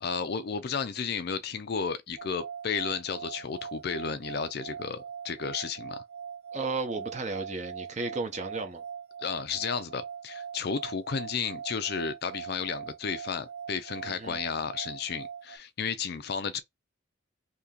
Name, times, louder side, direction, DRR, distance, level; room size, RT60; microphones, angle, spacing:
voice 1, 0.0-6.0 9.2-16.6, left 6 dB, 50° left, 0.4 m, -33 dB
sound 1, 2.2-15.6, right 7 dB, 65° right, 0.7 m, -42 dB
voice 2, 6.5-8.8 14.1-14.4, right 3 dB, 35° right, 0.8 m, -34 dB
2.8 x 2.8 x 3.7 m
head